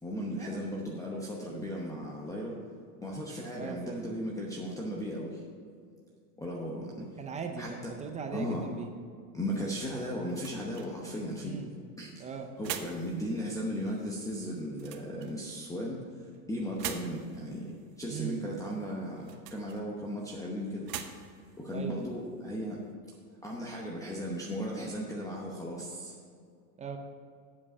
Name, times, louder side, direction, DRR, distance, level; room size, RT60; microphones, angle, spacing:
voice 1, 0.0-2.6 3.0-5.4 6.4-7.2 7.6-7.9 8.3-8.7 9.3-11.6 12.0-12.3 12.6-20.9 21.1-21.3 21.6-22.8 23.4-26.1, equal, 5° left, -3 dB, 0.8 m, -36 dB
voice 2, 3.5-4.1 7.2-8.9 11.4-11.7 12.2-12.5 18.1-18.4 21.7-22.0 26.8-27.0, right 6 dB, 15° right, 5 dB, 0.5 m, -39 dB
sound 1, 10.1-23.0, right 10 dB, 85° right, 1.0 m, -47 dB
8.5 x 7.5 x 5.4 m, 2.2 s
supercardioid pair, 135°, 49 cm